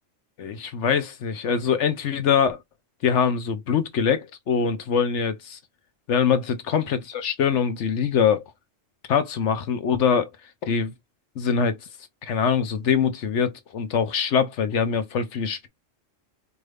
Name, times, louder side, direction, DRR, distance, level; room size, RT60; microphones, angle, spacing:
voice 1, 0.4-2.6 3.0-5.6 6.1-8.4 9.1-10.3 10.7-10.9 11.4-11.8 12.2-15.7, left 7 dB, 65° left, 1.0 m, -23 dB
4.6 x 2.6 x 3.3 m
omnidirectional pair, 1.3 m